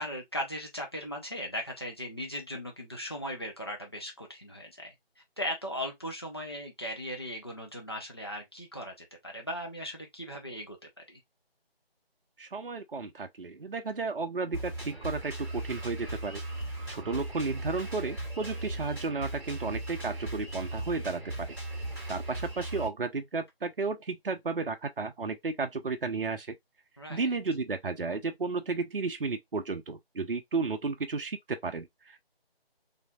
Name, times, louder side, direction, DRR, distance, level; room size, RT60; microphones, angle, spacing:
voice 1, 0.0-4.9 5.4-11.2 27.0-27.3, equal, 25° left, 0.8 m, -38 dB
voice 2, 12.4-16.4 16.9-21.6 22.1-26.6 27.1-32.2, right 4 dB, 60° right, 0.6 m, -33 dB
Drum kit, 14.5-22.9, right 1 dB, 20° right, 2.4 m, -37 dB
4.5 x 2.7 x 2.3 m
figure-of-eight pair, 165°, 31 cm